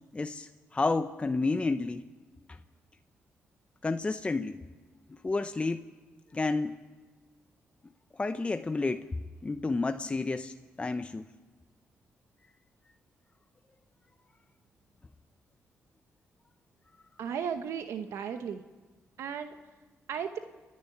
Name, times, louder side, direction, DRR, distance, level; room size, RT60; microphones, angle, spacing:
voice 1, 0.1-2.1 3.8-4.6 5.2-5.8 6.3-6.7 8.1-9.1 9.4-11.3, left 3 dB, 25° left, 9 dB, 0.7 m, -30 dB
voice 2, 17.2-18.6 19.2-19.6 20.1-20.4, right 7 dB, 85° right, 7 dB, 1.0 m, -35 dB
29.5 x 10.5 x 9.5 m, 1.3 s
cardioid pair, 85°, 5 cm